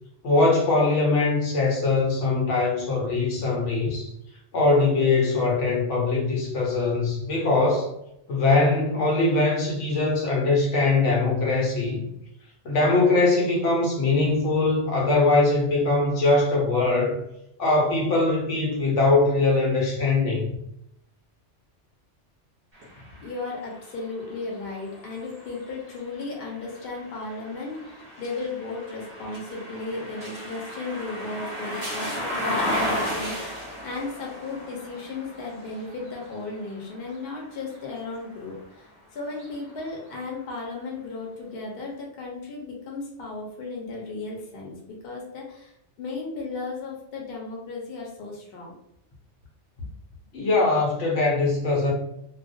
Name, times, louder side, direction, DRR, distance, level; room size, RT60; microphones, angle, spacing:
voice 1, 0.2-4.1 4.5-8.0 8.3-12.0 12.6-17.2 17.6-20.5 50.3-51.9, left 3 dB, 80° left, -2 dB, 1.0 m, -22 dB
sound 1, 22.7-38.7 39.2-40.5, left 1 dB, 40° right, 0.8 m, -35 dB
voice 2, 22.9-44.8 45.0-48.7 49.8-49.9, left 3 dB, 60° left, -1 dB, 0.8 m, -35 dB
2.3 x 2.1 x 2.5 m, 0.77 s
omnidirectional pair, 1.2 m